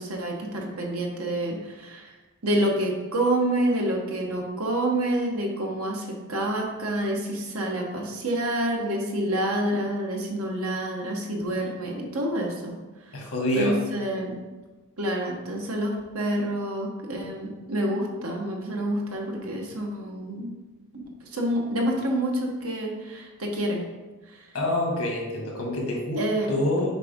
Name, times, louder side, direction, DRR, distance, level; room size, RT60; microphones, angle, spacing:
voice 1, 0.0-2.1 2.4-12.8 13.1-13.2 13.5-14.4 15.0-20.5 20.9-21.0 21.3-23.8 26.2-26.5, right 1 dB, 75° right, 0 dB, 1.2 m, -28 dB
voice 2, 13.1-13.8 24.5-26.9, left 1 dB, 80° left, -2 dB, 1.9 m, -26 dB
6.7 x 4.7 x 3.6 m, 1.2 s
head